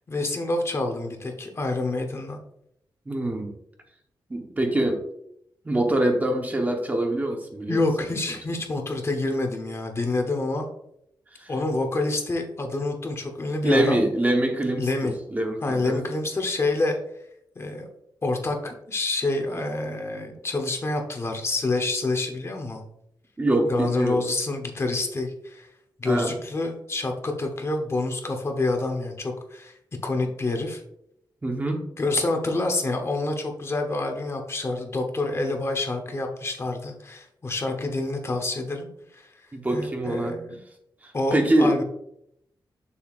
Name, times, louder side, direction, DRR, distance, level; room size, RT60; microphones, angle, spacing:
voice 1, 0.1-2.4 7.7-10.7 11.5-14.0 14.8-15.2 15.6-17.0 17.6-17.9 18.2-22.8 23.7-25.7 26.0-29.7 30.0-30.8 32.0-38.9 39.1-39.3 39.7-40.6 41.1-41.8, left 2 dB, 35° left, 3 dB, 0.9 m, -27 dB
voice 2, 3.1-3.5 4.3-5.0 5.6-8.1 11.4-11.5 13.6-16.0 23.4-24.2 26.1-26.3 31.4-31.8 39.5-40.4 41.0-41.8, right 1 dB, 20° right, 3 dB, 1.0 m, -24 dB
7.0 x 6.9 x 2.5 m, 0.76 s
wide cardioid pair, 145°, 8 cm